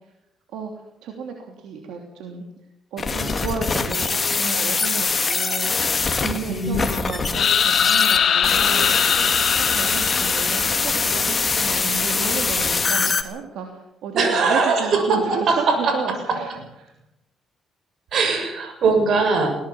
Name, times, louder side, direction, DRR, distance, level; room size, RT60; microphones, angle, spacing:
voice 1, 1.0-2.4 2.9-9.2 9.6-16.5 16.8-16.9, right 5 dB, 85° right, 3 dB, 3.0 m, -32 dB
sound 1, 3.0-13.2, left 4 dB, 30° left, 2.3 m, -23 dB
voice 2, 6.4-6.8 14.2-16.4 18.1-19.5, right 4 dB, 65° right, 5 dB, 7.1 m, -21 dB
sound 2, 7.3-11.2, left 8 dB, 60° left, 2.1 m, -21 dB
21.5 x 17.5 x 7.1 m, 0.88 s
cardioid pair, 90°, 0 cm